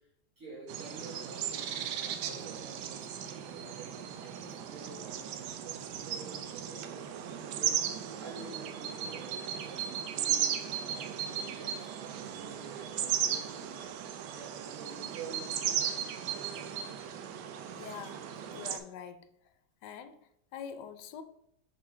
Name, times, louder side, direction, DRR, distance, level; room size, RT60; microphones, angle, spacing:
voice 1, 0.4-7.1 7.5-7.8 8.1-13.8 14.3-15.9, right 4 dB, 50° right, 1.5 m, -49 dB
sound 1, 0.7-18.8, right 9 dB, 85° right, 1.2 m, -36 dB
voice 2, 17.7-18.2 18.5-19.3 19.8-21.2, left 8 dB, 85° left, 1.2 m, -45 dB
6.0 x 3.9 x 4.3 m
omnidirectional pair, 1.8 m